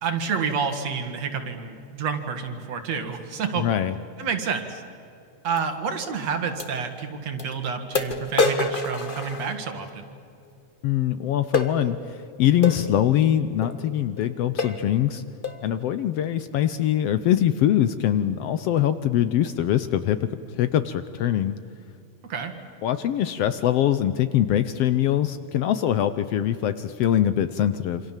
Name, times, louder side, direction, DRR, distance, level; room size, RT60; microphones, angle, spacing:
voice 1, 0.0-3.7 4.2-4.8 5.4-10.1 22.2-22.5, right 6 dB, 60° right, 6 dB, 3.0 m, -29 dB
voice 2, 3.5-3.9 10.8-15.2 15.6-21.6 22.8-28.0, left 11 dB, 70° left, 12 dB, 1.5 m, -23 dB
sound 1, 5.6-5.7 6.6-6.7 7.4-7.5 7.9-9.9 11.5-11.7 12.6-12.8 13.6-13.8 14.2-14.3 14.6-14.9 15.4-15.7, left 3 dB, 35° left, 0.8 m, -26 dB
28.0 x 26.0 x 7.4 m, 2.6 s
omnidirectional pair, 3.4 m